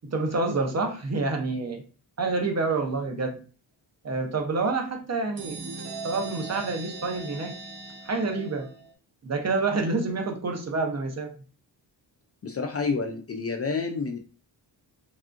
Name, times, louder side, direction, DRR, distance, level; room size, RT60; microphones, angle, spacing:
voice 1, 0.0-1.8 2.2-3.4 4.0-5.6 6.0-7.6 8.1-8.7 9.2-11.3, right 3 dB, 35° right, 4 dB, 0.7 m, -28 dB
sound 1, 5.4-8.9, right 3 dB, 70° right, 0.9 m, -39 dB
voice 2, 12.4-14.2, left 4 dB, 35° left, 4 dB, 0.4 m, -29 dB
3.5 x 2.4 x 2.5 m, 0.36 s
wide cardioid pair, 100°, 43 cm